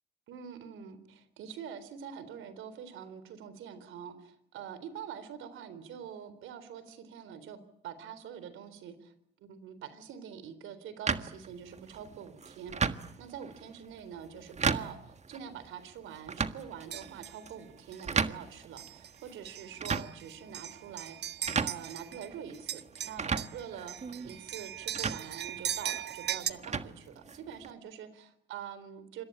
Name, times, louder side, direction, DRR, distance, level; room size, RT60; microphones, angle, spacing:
voice 1, 0.3-21.2 21.6-24.0 24.2-29.2, right 8 dB, 85° right, 14 dB, 4.0 m, -45 dB
sound 1, 11.1-27.7, right 5 dB, 35° right, 1.6 m, -37 dB
sound 2, 16.9-17.4 17.9-18.1 18.8-19.1 19.5-22.3 22.5-26.5, right 10 dB, 60° right, 1.1 m, -39 dB
27.0 x 22.0 x 8.9 m, 0.72 s
cardioid pair, 90°, 20 cm